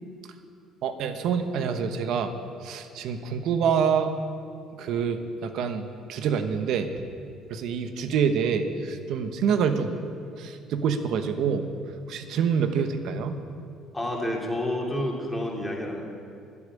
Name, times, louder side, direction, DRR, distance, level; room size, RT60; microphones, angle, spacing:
voice 1, 0.8-2.3 2.6-4.1 4.8-6.9 7.5-9.9 10.4-11.6 12.1-13.4, right 6 dB, 70° right, 8 dB, 1.2 m, -26 dB
voice 2, 13.9-16.0, left 1 dB, 10° left, -2 dB, 3.0 m, -29 dB
12.5 x 8.6 x 9.9 m, 2.4 s
cardioid pair, 100°, 0 cm